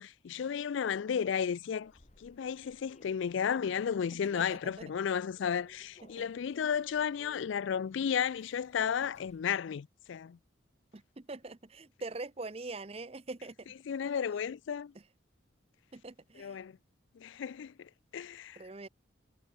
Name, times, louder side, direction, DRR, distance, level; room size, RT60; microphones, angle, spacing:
voice 1, 0.0-1.9 2.2-10.4 13.9-14.9 16.4-16.7 17.2-17.7 18.1-18.6, left 7 dB, 75° left, 0.4 m, -33 dB
Human voice / Subway metro underground, 1.6-9.6, left 2 dB, 35° left, 1.2 m, -62 dB
voice 2, 4.3-4.9 6.0-6.3 10.9-13.7 14.9-15.0 15.9-16.6 18.6-18.9, right 3 dB, 30° right, 0.7 m, -43 dB
head